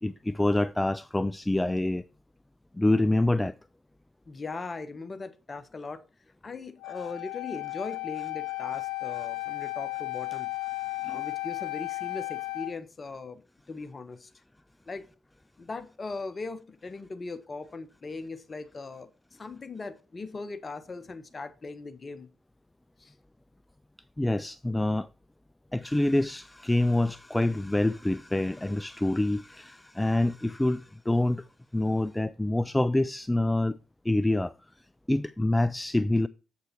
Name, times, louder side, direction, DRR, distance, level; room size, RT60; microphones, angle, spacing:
voice 1, 0.0-2.0 2.8-3.5 11.0-11.2 24.2-25.1 25.7-31.4 31.7-33.8 34.1-34.5 35.1-36.3, left 1 dB, 10° left, 0.4 m, -26 dB
voice 2, 4.3-6.0 6.4-10.5 11.1-13.4 13.7-14.3 14.9-15.0 15.6-22.3 23.0-23.1, left 3 dB, 35° left, 1.0 m, -39 dB
Wind instrument woodwind instrument, 6.8-12.7, left 22 dB, 65° left, 0.6 m, -34 dB
7.9 x 6.7 x 4.4 m
figure-of-eight pair, 40°, 0 cm